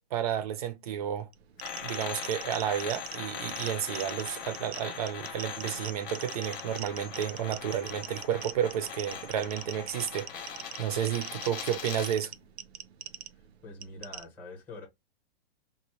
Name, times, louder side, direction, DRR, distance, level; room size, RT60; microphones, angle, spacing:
voice 1, 0.1-1.3 1.8-12.3, right 10 dB, 40° right, 0.5 m, -32 dB
sound 1, 1.3-14.2, right 10 dB, 85° right, 0.6 m, -44 dB
sound 2, 1.6-12.2, left 7 dB, 20° left, 0.4 m, -40 dB
voice 2, 13.6-14.9, left 2 dB, 5° left, 0.8 m, -44 dB
4.1 x 2.1 x 3.0 m
hypercardioid pair, 165°, 31 cm